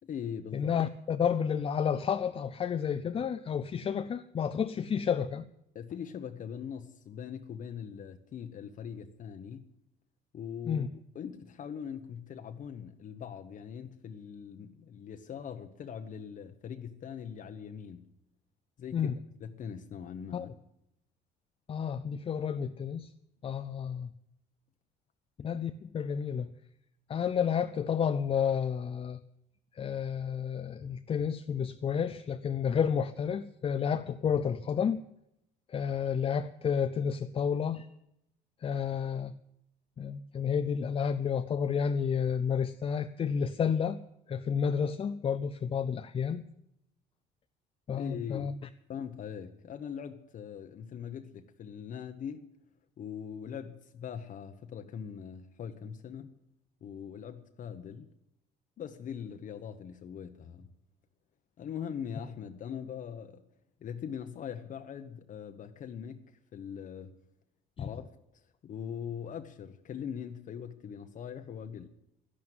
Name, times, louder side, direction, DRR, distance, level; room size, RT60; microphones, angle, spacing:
voice 1, 0.0-0.7 5.7-9.7 10.3-10.9 11.1-18.1 18.8-19.1 19.4-20.5 47.9-48.6 48.9-52.5 53.0-56.4 56.8-58.1 58.8-60.7 61.6-63.4 63.8-67.1 67.8-68.1 68.6-71.9, left 8 dB, 50° left, 1.0 m, -41 dB
voice 2, 0.5-5.5 10.7-10.9 18.9-19.1 20.3-20.5 21.7-23.1 23.4-24.1 25.4-26.5 27.1-29.2 29.7-35.0 35.7-37.9 38.6-39.3 40.0-44.0 44.3-46.4 47.9-48.5 67.8-67.9, left 7 dB, 35° left, 0.5 m, -31 dB
11.5 x 11.0 x 9.4 m
cardioid pair, 110°, 17 cm